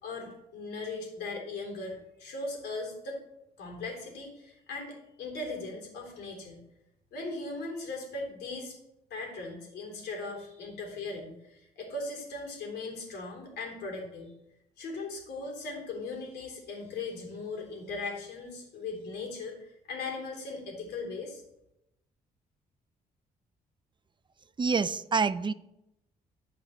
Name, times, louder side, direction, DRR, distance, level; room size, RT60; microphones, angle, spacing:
voice 1, 0.0-3.2 3.6-6.6 7.1-8.8 9.1-14.3 14.8-21.4, left 3 dB, 85° left, 0 dB, 3.4 m, -38 dB
voice 2, 24.6-25.5, right 5 dB, 30° right, 13 dB, 0.6 m, -27 dB
15.5 x 5.3 x 3.2 m, 0.84 s
cardioid pair, 75°, 17 cm